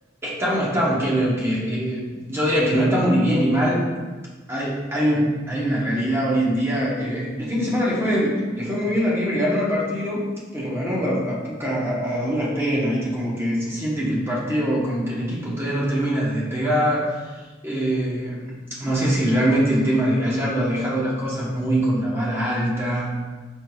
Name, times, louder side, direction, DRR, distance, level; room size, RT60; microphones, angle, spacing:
voice 1, 0.2-3.8 4.5-10.2 10.5-17.1 17.6-23.1, equal, 15° right, -5 dB, 1.0 m, -23 dB
6.0 x 3.6 x 2.3 m, 1.3 s
head